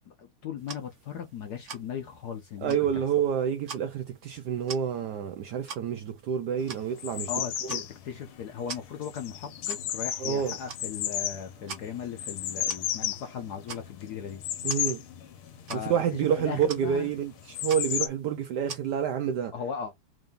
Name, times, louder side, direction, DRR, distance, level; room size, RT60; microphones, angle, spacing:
voice 1, 0.1-2.9 7.3-14.4 15.7-17.1 19.5-19.9, left 7 dB, 65° left, 1.0 m, -38 dB
sound 1, 0.6-19.4, right 6 dB, 50° right, 0.9 m, -47 dB
voice 2, 2.6-7.3 7.6-7.8 10.2-10.6 14.6-15.0 15.8-19.5, right 8 dB, 75° right, 0.9 m, -28 dB
sound 2, 6.6-18.1, left 11 dB, 85° left, 1.6 m, -34 dB
3.7 x 2.6 x 3.5 m
omnidirectional pair, 2.3 m